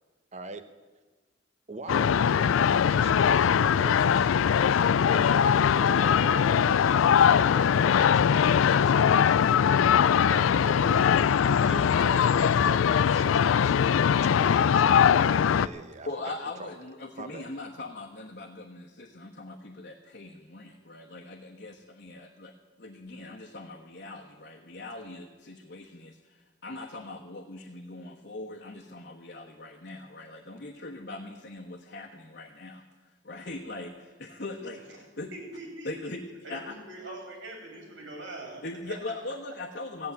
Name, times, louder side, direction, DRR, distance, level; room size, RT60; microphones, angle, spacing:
voice 1, 0.3-0.7 1.7-4.3 5.1-9.5 10.3-11.1 11.5-12.4 12.6-13.8 14.4-16.7 17.2-17.5, right 2 dB, 35° right, 9 dB, 1.0 m, -42 dB
sound 1, 1.9-15.7, left 8 dB, 90° left, 0.4 m, -21 dB
voice 2, 16.1-22.5 22.8-32.8 33.2-35.3 35.8-36.2 36.5-36.8 38.6-40.1, left 2 dB, 55° left, 0 dB, 1.2 m, -40 dB
voice 3, 35.3-35.9 36.4-39.0, right 2 dB, 75° right, 1 dB, 3.9 m, -42 dB
15.5 x 8.4 x 8.9 m, 1.3 s
head